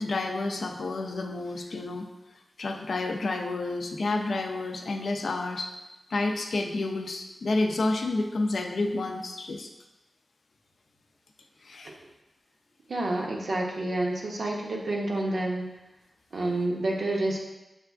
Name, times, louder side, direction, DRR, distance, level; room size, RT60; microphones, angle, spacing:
voice 1, 0.0-2.1 2.6-5.7 6.1-9.7 11.6-11.9, left 2 dB, 70° left, 4 dB, 0.4 m, -30 dB
voice 2, 12.9-15.7 16.3-17.4, right 2 dB, 70° right, -1 dB, 0.7 m, -29 dB
6.4 x 2.4 x 2.3 m, 0.99 s
wide cardioid pair, 95°, 0 cm